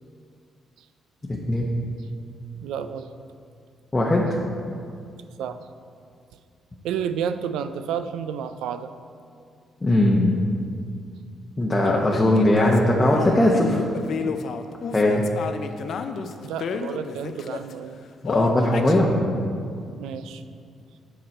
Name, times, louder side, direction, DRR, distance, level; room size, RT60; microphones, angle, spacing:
voice 1, 1.3-1.7 3.9-4.4 9.8-10.4 11.6-13.8 14.9-15.2 18.2-19.3, left 1 dB, 20° left, -3 dB, 0.8 m, -20 dB
voice 2, 2.6-3.1 5.4-5.6 6.8-8.9 16.4-18.0 20.0-20.4, right 8 dB, 90° right, 10 dB, 0.3 m, -30 dB
sound 1, 11.8-17.7 18.3-19.0, left 6 dB, 60° left, 0.4 m, -30 dB
7.8 x 6.1 x 4.3 m, 2.4 s
cardioid pair, 90°, 0 cm